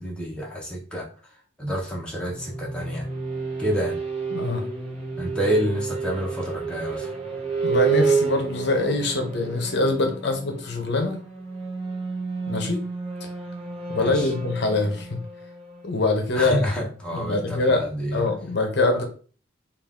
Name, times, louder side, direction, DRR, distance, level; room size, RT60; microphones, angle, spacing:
voice 1, 0.0-3.1 3.6-4.0 5.2-7.1 13.9-14.3 16.3-18.2, equal, 5° left, -3 dB, 0.8 m, -28 dB
sound 1, 2.1-16.8, right 5 dB, 30° right, 0.9 m, -30 dB
voice 2, 4.3-4.7 7.6-11.2 12.5-12.8 13.9-15.2 15.8-16.6 17.1-17.8 18.1-19.0, left 2 dB, 60° left, 4 dB, 0.7 m, -24 dB
3.5 x 2.4 x 3.5 m, 0.40 s
head